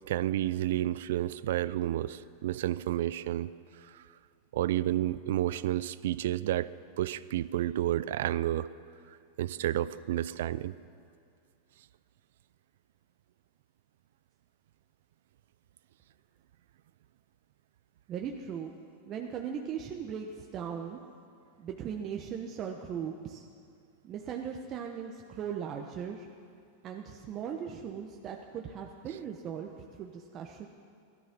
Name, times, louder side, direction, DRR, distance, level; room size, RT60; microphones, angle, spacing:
voice 1, 0.0-3.5 3.9-4.0 4.5-6.7 7.0-8.7 9.4-10.7, right 13 dB, 75° right, 17 dB, 0.5 m, -30 dB
voice 2, 18.1-18.7 19.1-21.0 21.6-23.4 24.0-26.3 26.8-29.7 30.0-30.7, right 7 dB, 35° right, 2 dB, 1.1 m, -38 dB
16.5 x 13.0 x 6.1 m, 2.4 s
hypercardioid pair, 120°, 0 cm